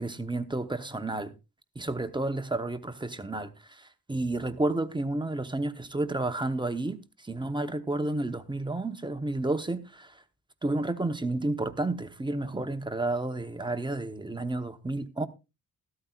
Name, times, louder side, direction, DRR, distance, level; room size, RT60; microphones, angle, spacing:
voice 1, 0.0-1.3 1.8-10.2 10.6-15.3, right 2 dB, 15° right, 0.8 m, -31 dB
14.0 x 13.0 x 2.4 m
cardioid pair, 125°, 36 cm